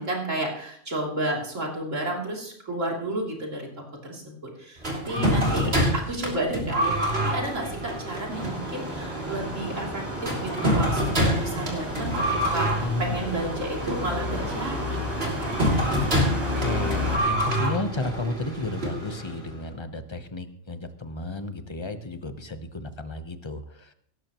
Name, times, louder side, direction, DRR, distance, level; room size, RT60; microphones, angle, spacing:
voice 1, 0.0-3.7 4.0-15.0 15.4-15.5, right 1 dB, 85° right, -2 dB, 3.6 m, -32 dB
sound 1, 4.8-19.5, equal, 50° right, 3.2 m, -27 dB
voice 2, 5.2-5.9 12.8-13.2 16.1-23.9, left 2 dB, 25° left, 9 dB, 0.9 m, -32 dB
sound 2, 8.3-17.2, left 1 dB, 10° right, 6.0 m, -33 dB
17.5 x 13.5 x 3.0 m, 0.66 s
omnidirectional pair, 1.3 m